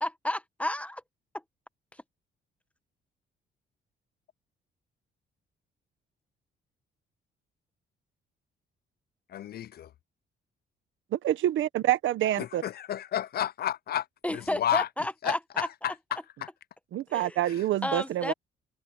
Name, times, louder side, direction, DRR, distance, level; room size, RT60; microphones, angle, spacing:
voice 1, 0.0-1.0 14.2-16.2 17.1-17.4 17.8-18.3, left 1 dB, 5° left, 1.4 m, -32 dB
voice 2, 9.3-9.9 12.4-14.0 14.3-14.9 15.2-15.9 16.4-16.5, left 11 dB, 50° left, 0.4 m, -31 dB
voice 3, 11.1-12.6 16.9-18.3, right 13 dB, 80° right, 1.4 m, -27 dB
cardioid pair, 90°, 20 cm